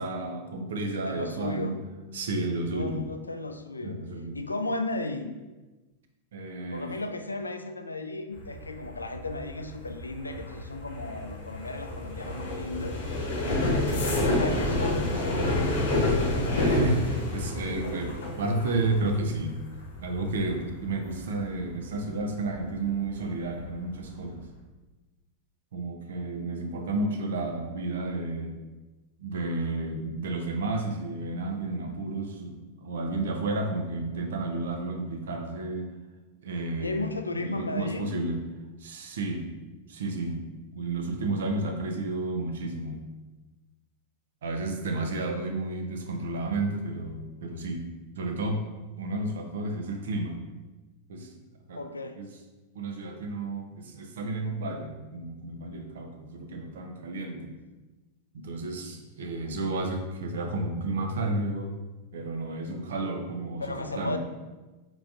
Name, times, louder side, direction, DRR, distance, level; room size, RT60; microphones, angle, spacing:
voice 1, 0.0-1.8 2.1-3.1 3.8-4.4 6.3-7.0 16.6-19.5 20.0-24.4 25.7-28.5 29.2-35.9 36.4-38.4 38.8-39.5 39.9-40.4 40.7-43.0 44.4-47.8 48.2-48.6 49.0-50.4 51.1-51.3 51.7-51.8 52.2-52.3 52.7-57.5 58.3-61.7 62.1-64.2, right 2 dB, 70° right, 4 dB, 0.6 m, -31 dB
voice 2, 1.0-1.8 2.7-4.0 4.3-5.4 6.7-13.0 13.8-15.8 16.1-16.3 36.8-38.1 51.8-52.2 63.6-64.2, left 2 dB, 90° left, 7 dB, 0.3 m, -35 dB
sound 1, 8.3-23.0 23.3-23.7 24.0-24.4, left 2 dB, 75° left, 0.9 m, -29 dB
4.5 x 3.8 x 2.4 m, 1.2 s
figure-of-eight pair, 95°, 0 cm